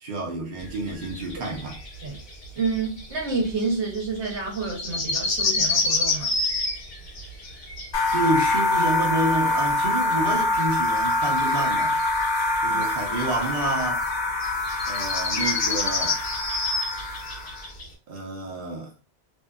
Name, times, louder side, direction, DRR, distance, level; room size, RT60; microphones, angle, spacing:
voice 1, 0.0-1.8 8.1-12.0 12.6-14.0 14.9-16.2 18.1-18.9, right 2 dB, 50° right, 0.8 m, -29 dB
sound 1, 0.6-17.9, left 3 dB, 45° left, 0.9 m, -30 dB
voice 2, 2.6-6.3 12.7-12.8, right 4 dB, 70° right, 1.1 m, -29 dB
sound 2, 7.9-17.7, left 2 dB, 65° left, 1.0 m, -25 dB
2.7 x 2.4 x 2.3 m
omnidirectional pair, 1.2 m